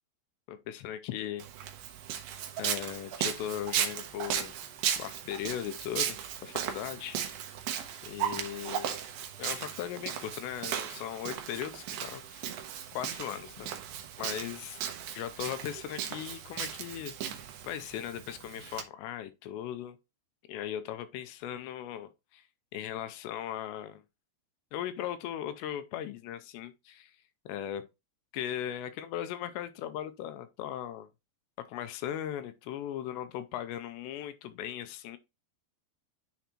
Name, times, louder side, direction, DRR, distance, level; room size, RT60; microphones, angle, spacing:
voice 1, 0.5-1.4 2.6-4.6 5.0-7.2 8.0-9.0 9.4-12.5 12.9-13.7 14.2-14.8 15.1-17.1 17.6-20.0 20.5-22.5 22.7-24.0 24.7-27.2 27.5-27.8 28.3-31.1 31.6-35.2, left 11 dB, 85° left, 2.7 m, -38 dB
Walk footsteps, 1.4-18.8, right 9 dB, 80° right, 2.1 m, -36 dB
10.0 x 3.4 x 2.9 m
omnidirectional pair, 5.1 m